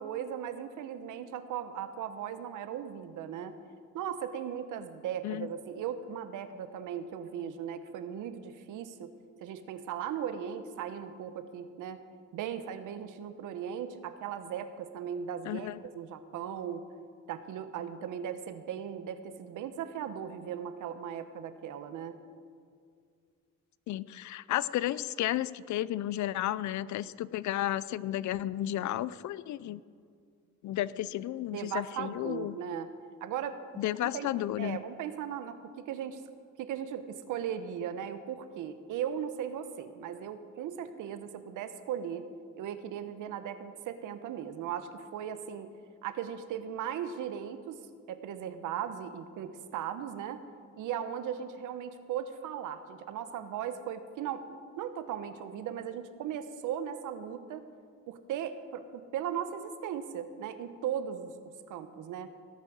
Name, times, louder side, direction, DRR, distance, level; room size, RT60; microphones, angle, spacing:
voice 1, 0.0-3.5 3.9-9.1 9.4-12.0 12.3-16.8 17.3-22.2 31.5-32.9 33.2-33.6 34.0-34.3 34.6-36.2 36.6-42.3 42.6-45.7 46.0-47.8 48.1-50.4 50.8-54.4 54.8-57.6 58.1-62.3, right 9 dB, 85° right, 11 dB, 1.0 m, -37 dB
voice 2, 15.5-15.8 23.9-29.8 30.6-32.6 33.8-34.8, left 13 dB, 70° left, 19 dB, 0.5 m, -33 dB
18.0 x 8.5 x 6.3 m, 2.2 s
cardioid pair, 90°, 30 cm